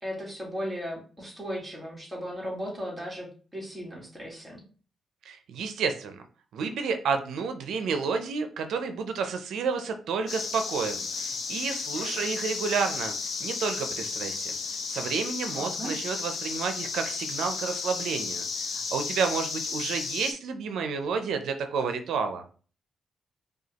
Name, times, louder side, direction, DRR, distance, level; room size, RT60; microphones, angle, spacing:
voice 1, 0.0-4.6 11.9-12.3 15.5-16.0, equal, 5° right, -3 dB, 1.7 m, -36 dB
voice 2, 5.3-6.2 6.5-13.1 13.4-14.6 14.9-18.5 18.7-22.4, right 5 dB, 90° right, 7 dB, 0.4 m, -30 dB
sound 1, 10.3-20.3, left 5 dB, 70° left, 0.7 m, -33 dB
5.0 x 2.3 x 2.9 m, 0.39 s
cardioid pair, 110°, 0 cm